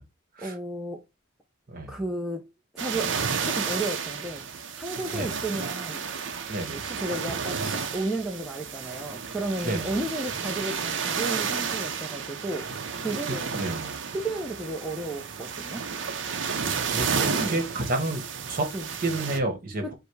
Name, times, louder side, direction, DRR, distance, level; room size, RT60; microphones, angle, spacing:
voice 1, 0.4-1.0 1.9-3.2 3.4-4.4 4.7-6.1 6.7-13.5 14.1-15.9 17.4-17.6 18.7-18.9 19.8-19.9, right 2 dB, ahead, 0.6 m, -33 dB
sound 1, 2.8-19.4, right 6 dB, 65° right, 0.7 m, -32 dB
voice 2, 6.5-6.8 9.6-9.9 13.3-13.9 16.6-18.7 19.0-19.9, right 2 dB, 45° right, 1.2 m, -30 dB
4.9 x 2.2 x 4.7 m
head